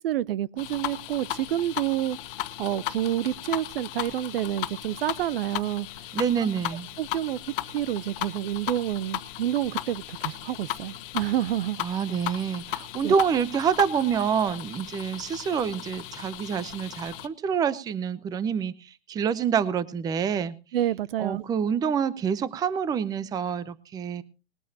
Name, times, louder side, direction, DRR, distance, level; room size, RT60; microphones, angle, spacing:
voice 1, 0.0-2.2 2.6-5.9 7.0-7.4 7.7-11.8 13.0-13.2 20.7-21.4, right 12 dB, 60° right, 0.6 m, -28 dB
sound 1, 0.6-17.3, left 14 dB, 50° left, 1.2 m, -36 dB
voice 2, 6.1-6.9 11.8-18.7 19.1-20.5 21.2-24.2, right 7 dB, 10° right, 0.6 m, -27 dB
20.0 x 13.5 x 2.8 m
hypercardioid pair, 130°, 32 cm